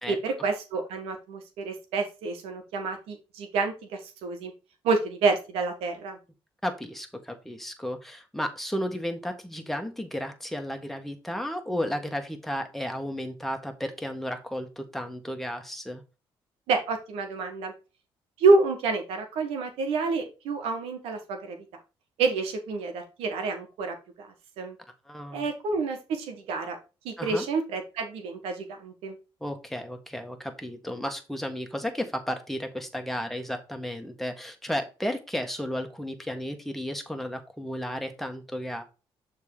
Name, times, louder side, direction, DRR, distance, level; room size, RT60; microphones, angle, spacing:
voice 1, 0.1-4.5 4.8-6.2 16.7-17.7 18.4-21.6 22.2-24.7 25.3-26.8 27.0-29.1, right 3 dB, 90° right, 5 dB, 1.6 m, -28 dB
voice 2, 6.6-16.0 25.1-25.5 27.2-27.5 29.4-38.8, equal, ahead, 5 dB, 1.6 m, -33 dB
6.8 x 3.8 x 4.9 m, 0.30 s
cardioid pair, 80°, 10 cm